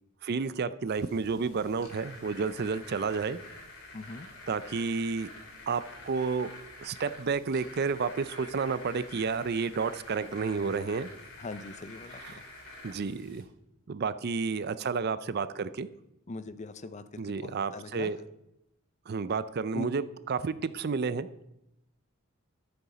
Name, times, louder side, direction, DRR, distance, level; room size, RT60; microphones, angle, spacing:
voice 1, 0.2-3.4 4.5-5.3 5.7-6.5 6.8-11.1 12.3-12.4 12.8-13.4 13.9-15.9 17.2-18.2 19.1-21.3, right 5 dB, 50° right, 15 dB, 0.5 m, -31 dB
sound 1, 0.9-13.4, left 2 dB, 70° left, 3.5 m, -48 dB
voice 2, 3.9-4.3 11.4-12.5 16.3-18.1 19.7-19.9, left 2 dB, 35° left, 12 dB, 0.6 m, -41 dB
13.0 x 6.9 x 5.0 m, 0.85 s
head